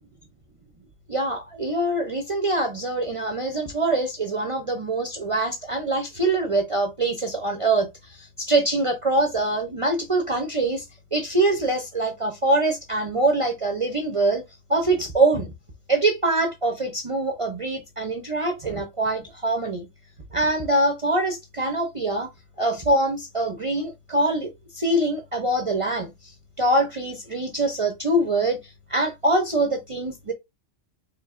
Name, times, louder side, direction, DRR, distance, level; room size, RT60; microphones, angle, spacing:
voice 1, 1.1-7.9 8.4-10.8 11.1-14.4 14.7-15.5 15.9-19.9 20.3-22.3 22.6-26.1 26.6-28.6 28.9-30.3, right 2 dB, 35° right, 0.6 m, -24 dB
4.5 x 3.3 x 2.4 m
omnidirectional pair, 1.2 m